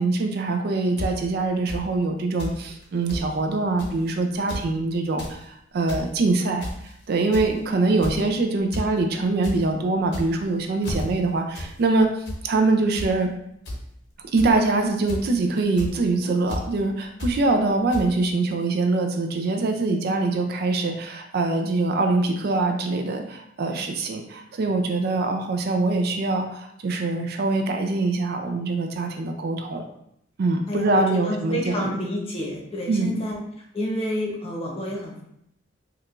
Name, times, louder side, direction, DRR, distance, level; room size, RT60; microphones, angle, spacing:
voice 1, 0.0-6.7 7.1-12.1 12.4-13.3 14.3-29.9 30.4-31.9 32.9-33.2, right 3 dB, 55° right, 4 dB, 0.4 m, -23 dB
sound 1, 1.0-1.1 1.7-1.8 2.4-2.6 2.8-2.9 3.1-3.2 3.8-4.0 4.4-4.6 5.0-5.3 5.7-6.0 6.6-6.9 7.3-7.6 8.0-8.3 8.7-8.9 9.2-9.5 10.0-10.4 10.8-11.0 11.5-11.7 12.0-12.4 13.0-13.1 13.6-13.8 14.4-14.6 15.1-15.3 15.8-15.9 16.5-16.6 17.2-17.3 17.9-18.0, left 1 dB, 60° left, 0.9 m, -31 dB
voice 2, 30.7-33.4 33.7-35.2, equal, 30° left, -2 dB, 0.8 m, -29 dB
4.6 x 2.3 x 2.4 m, 0.75 s
head